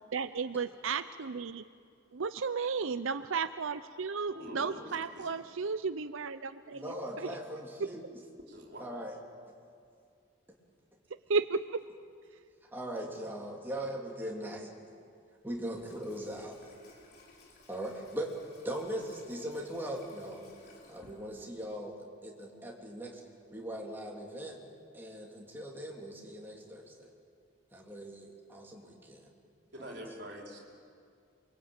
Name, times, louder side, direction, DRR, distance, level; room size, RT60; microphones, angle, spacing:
voice 1, 0.1-1.6 2.1-6.8 7.2-7.3 7.8-7.9 11.3-11.8, right 5 dB, 85° right, 12 dB, 0.6 m, -33 dB
voice 2, 4.3-5.3 8.5-9.0 29.7-30.6, equal, 55° right, -1 dB, 4.7 m, -45 dB
voice 3, 6.7-8.0 8.8-9.2 12.7-14.7 15.4-16.6 17.7-18.3 18.6-20.4 20.9-23.2 23.5-24.6 24.9-27.1 27.7-29.3 29.7-30.0, right 1 dB, 10° right, -2 dB, 3.5 m, -40 dB
Water tap faucet / Sink (filling or washing), 15.5-21.8, left 2 dB, 50° left, 4.8 m, -59 dB
28.0 x 23.0 x 8.9 m, 2.3 s
head